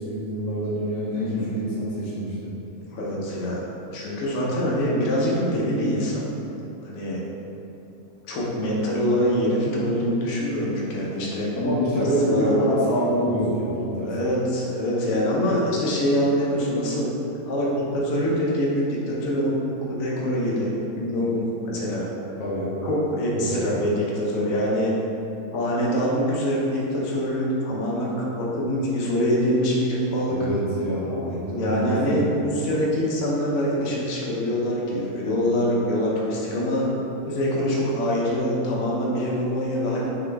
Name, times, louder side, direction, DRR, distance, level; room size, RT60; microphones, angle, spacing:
voice 1, 0.0-2.5 11.6-14.1 22.4-22.7 23.3-23.6 30.3-32.4, equal, 85° left, -7 dB, 1.3 m, -25 dB
voice 2, 1.2-1.5 2.9-3.6 3.9-6.3 6.8-7.2 8.3-11.5 12.2-12.5 14.0-17.1 17.4-22.1 22.8-24.9 25.5-30.4 31.5-36.9 37.2-40.1, equal, 70° left, -4 dB, 1.2 m, -24 dB
3.9 x 3.7 x 3.3 m, 2.9 s
omnidirectional pair, 1.6 m